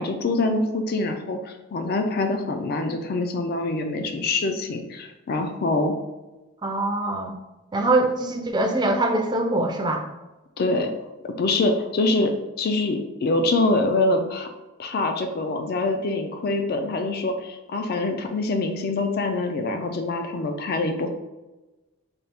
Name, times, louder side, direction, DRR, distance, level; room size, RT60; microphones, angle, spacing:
voice 1, 0.0-5.9 10.6-10.9 11.2-14.5 14.8-21.1, left 2 dB, 45° left, 5 dB, 0.4 m, -25 dB
voice 2, 6.6-7.4 7.7-10.0, right 2 dB, 20° right, 4 dB, 0.4 m, -23 dB
4.1 x 2.3 x 3.4 m, 1.1 s
head